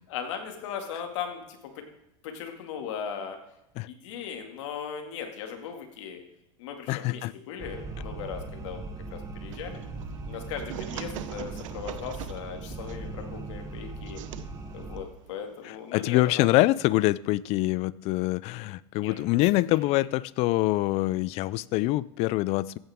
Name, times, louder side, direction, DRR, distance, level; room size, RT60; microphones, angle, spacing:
voice 1, 0.0-1.9 2.2-3.4 3.8-6.2 6.6-8.8 9.1-9.8 10.3-14.2 14.7-16.5 19.0-19.2, left 7 dB, 70° left, 4 dB, 2.3 m, -38 dB
voice 2, 6.9-7.3 15.6-22.8, left 18 dB, 40° left, 20 dB, 0.4 m, -25 dB
sound 1, 7.6-15.0, right 3 dB, 20° right, 1.4 m, -39 dB
sound 2, 9.5-16.2, right 11 dB, 85° right, 0.8 m, -43 dB
15.5 x 9.2 x 3.6 m, 0.86 s
supercardioid pair, 135°, 16 cm